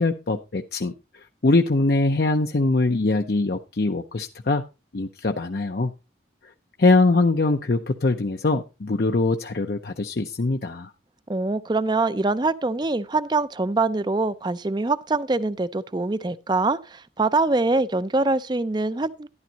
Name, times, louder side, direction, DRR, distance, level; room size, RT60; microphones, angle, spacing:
voice 1, 0.0-4.6 4.9-5.9 6.8-10.9, left 3 dB, 55° left, 0.6 m, -22 dB
voice 2, 11.3-19.3, right 3 dB, 25° right, 0.4 m, -24 dB
12.0 x 11.5 x 2.8 m
head